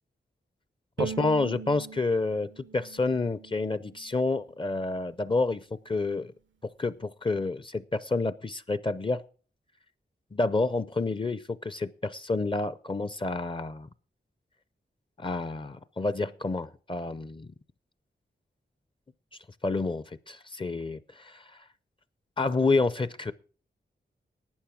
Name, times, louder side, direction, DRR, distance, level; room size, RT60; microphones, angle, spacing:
voice 1, 1.0-6.3 6.6-9.2 10.3-13.9 15.2-17.5 19.6-21.6 22.4-23.3, left 3 dB, 25° left, 16 dB, 0.5 m, -29 dB
Bowed string instrument, 1.0-4.2, right 7 dB, 85° right, 0.6 m, -40 dB
11.5 x 9.1 x 5.9 m, 0.39 s
wide cardioid pair, 135°, 19 cm